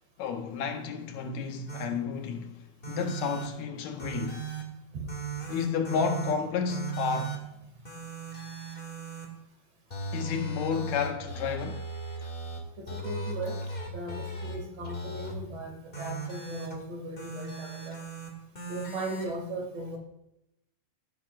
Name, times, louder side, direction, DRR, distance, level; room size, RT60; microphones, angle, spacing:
voice 1, 0.2-4.5 5.5-7.4 10.1-11.9, left 6 dB, 75° left, 2.2 m, -31 dB
sound 1, 1.7-1.8 2.8-3.5 4.0-4.6 5.1-6.3 6.7-7.4 7.8-9.2 9.9-12.6 12.9-14.5 14.8-15.4 15.9-16.8 17.2-18.3 18.5-19.3, right 3 dB, 20° left, 1.8 m, -37 dB
voice 2, 12.8-13.6 13.9-18.0 18.7-20.0, right 1 dB, 60° right, 3.2 m, -38 dB
16.5 x 8.8 x 2.4 m
omnidirectional pair, 3.4 m